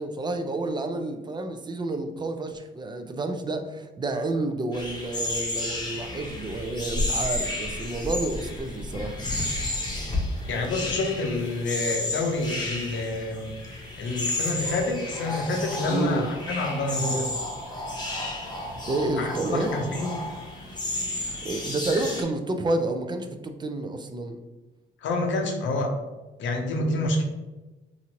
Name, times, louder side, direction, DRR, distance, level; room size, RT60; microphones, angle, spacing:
voice 1, 0.0-9.2 15.9-16.3 18.9-19.7 21.4-24.4, right 2 dB, 20° right, 6 dB, 0.3 m, -29 dB
sound 1, 4.7-22.2, left 2 dB, 20° left, 0.8 m, -32 dB
voice 2, 10.5-17.3 19.2-20.2 25.0-25.9 26.4-27.2, left 2 dB, 70° left, 2 dB, 0.7 m, -28 dB
2.9 x 2.5 x 2.8 m, 1.1 s
cardioid pair, 90°, 20 cm